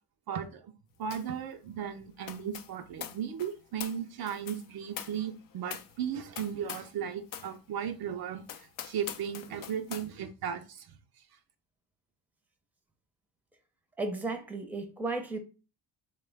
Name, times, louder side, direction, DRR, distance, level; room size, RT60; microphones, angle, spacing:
voice 1, 0.3-0.7 1.0-11.0, right 8 dB, 60° right, 0.5 m, -36 dB
sound 1, 1.1-1.4 1.6-7.0 7.3-7.5 8.0-8.1 8.4-10.1, left 9 dB, 50° left, 0.5 m, -44 dB
voice 2, 14.0-15.4, right 3 dB, 5° right, 0.6 m, -34 dB
3.2 x 2.2 x 3.3 m
cardioid pair, 80°, 43 cm